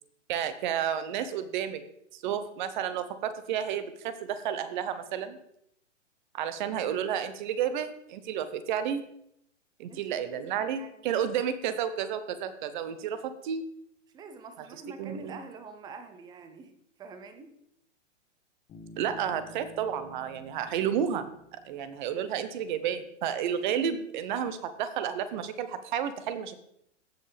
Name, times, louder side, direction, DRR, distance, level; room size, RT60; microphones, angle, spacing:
voice 1, 0.3-1.8 2.1-5.4 6.3-9.0 9.8-13.6 15.0-15.4 19.0-21.3 21.6-26.6, right 8 dB, 40° right, 12 dB, 0.9 m, -31 dB
voice 2, 9.9-11.1 14.1-17.5, right 3 dB, 10° right, 9 dB, 0.6 m, -46 dB
Bass guitar, 18.7-22.4, equal, 20° left, 1.4 m, -52 dB
15.5 x 5.4 x 3.4 m, 0.72 s
hypercardioid pair, 135°, 37 cm